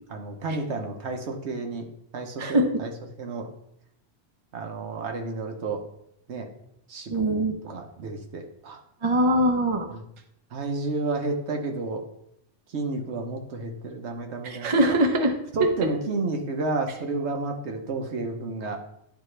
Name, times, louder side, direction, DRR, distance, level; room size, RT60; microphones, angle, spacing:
voice 1, 0.1-1.9 2.1-2.9 3.2-3.5 4.5-5.8 6.3-6.5 6.9-8.8 9.9-10.0 10.5-12.0 12.7-14.8 15.5-18.8, right 3 dB, 70° right, 3 dB, 1.1 m, -31 dB
voice 2, 7.1-7.6 9.0-9.9 14.4-15.3, right 1 dB, 35° right, 5 dB, 0.6 m, -22 dB
10.5 x 3.5 x 3.2 m, 0.76 s
omnidirectional pair, 1.2 m